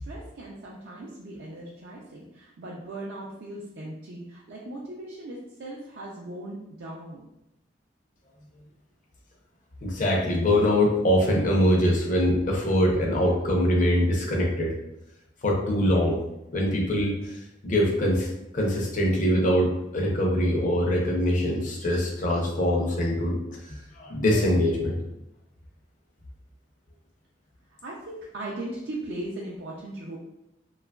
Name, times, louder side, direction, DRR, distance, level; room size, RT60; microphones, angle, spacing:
voice 1, 0.0-7.3 27.8-30.2, right 1 dB, 65° right, -4 dB, 0.4 m, -38 dB
voice 2, 9.8-14.8 15.4-16.2 16.5-18.3 18.5-23.4 23.7-25.0, equal, 45° left, -1 dB, 0.6 m, -23 dB
2.8 x 2.3 x 2.2 m, 0.87 s
head